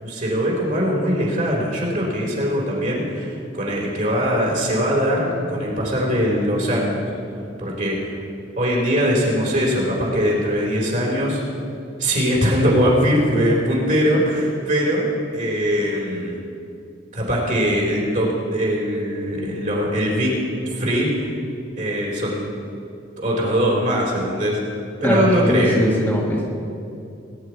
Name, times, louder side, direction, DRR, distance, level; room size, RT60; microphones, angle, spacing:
voice 1, 0.0-7.0 7.6-8.1 8.6-11.4 12.0-16.4 17.1-20.4 20.7-21.3 21.8-22.4 23.2-24.6 25.0-25.8, equal, 45° right, -3 dB, 3.9 m, -21 dB
voice 2, 25.0-26.5, equal, 10° left, -4 dB, 1.6 m, -20 dB
20.5 x 10.5 x 4.8 m, 2.6 s
head